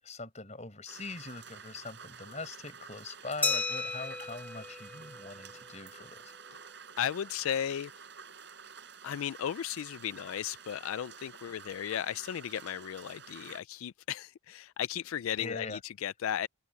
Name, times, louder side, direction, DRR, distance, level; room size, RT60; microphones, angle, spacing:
voice 1, 0.0-6.3 15.4-15.8, left 3 dB, 35° left, 5.0 m, -42 dB
sound 1, 0.9-13.6, right 6 dB, 55° right, 6.1 m, -50 dB
Glass, 3.4-5.9, left 4 dB, 5° left, 1.3 m, -35 dB
voice 2, 7.0-7.9 9.0-16.5, left 9 dB, 80° left, 0.3 m, -35 dB
head